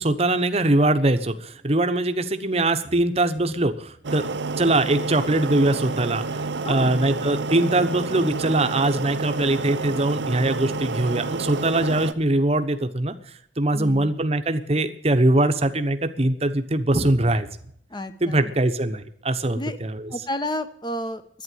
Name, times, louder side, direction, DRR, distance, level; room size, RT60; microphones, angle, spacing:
voice 1, 0.0-4.3 4.6-13.1 13.6-17.5 18.2-20.1, right 2 dB, 35° right, 9 dB, 1.0 m, -22 dB
sound 1, 4.0-12.1, right 3 dB, 75° right, 0.7 m, -29 dB
voice 2, 6.6-7.1 13.7-14.1 17.9-18.5 19.5-19.8 20.1-21.4, left 1 dB, 25° left, 10 dB, 1.0 m, -31 dB
11.5 x 9.5 x 9.2 m, 0.68 s
head